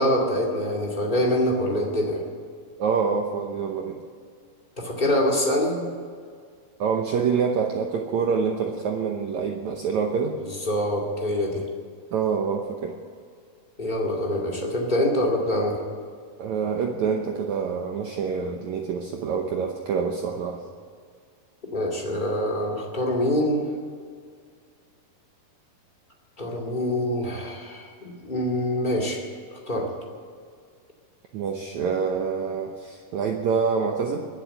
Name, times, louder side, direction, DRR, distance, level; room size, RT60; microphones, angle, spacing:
voice 1, 0.0-2.2 4.8-5.8 10.4-11.6 13.8-15.8 21.7-23.7 26.4-29.2 29.7-29.9, left 1 dB, 20° left, -1 dB, 1.6 m, -25 dB
voice 2, 2.8-4.1 6.8-10.4 12.1-13.0 16.4-20.6 31.3-34.3, right 6 dB, 75° right, 3 dB, 1.7 m, -26 dB
22.0 x 7.8 x 8.2 m, 2.1 s
omnidirectional pair, 4.5 m